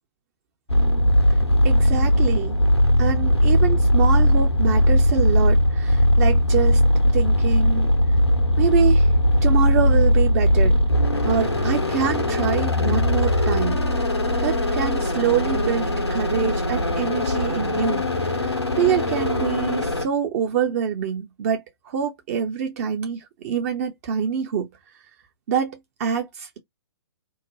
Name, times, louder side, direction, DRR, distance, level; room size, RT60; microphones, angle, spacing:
sound 1, 0.7-20.1, left 1 dB, 85° left, 1.1 m, -19 dB
voice 1, 1.6-2.5 3.0-6.8 7.1-7.9 8.6-9.1 9.4-10.8 11.2-13.8 14.4-18.0 18.4-24.7 25.5-26.6, right 8 dB, 35° right, 0.7 m, -25 dB
2.9 x 2.1 x 3.8 m
figure-of-eight pair, 120°, 13 cm